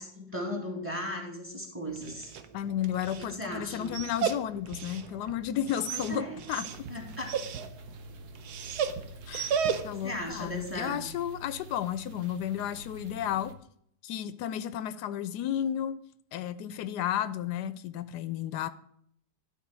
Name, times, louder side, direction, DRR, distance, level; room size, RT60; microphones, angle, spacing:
voice 1, 0.0-2.3 3.2-3.9 5.9-6.4 6.9-7.3 9.8-11.0, equal, 10° right, 1 dB, 1.9 m, -37 dB
Dog, 1.9-10.2, right 7 dB, 75° right, 1.3 m, -35 dB
voice 2, 2.5-6.7 9.3-13.5 14.0-16.0 16.3-18.7, left 10 dB, 85° left, 14 dB, 1.1 m, -33 dB
sound 1, 6.7-13.5, right 1 dB, 55° right, 1.2 m, -47 dB
12.0 x 4.2 x 6.1 m, 0.69 s
omnidirectional pair, 1.7 m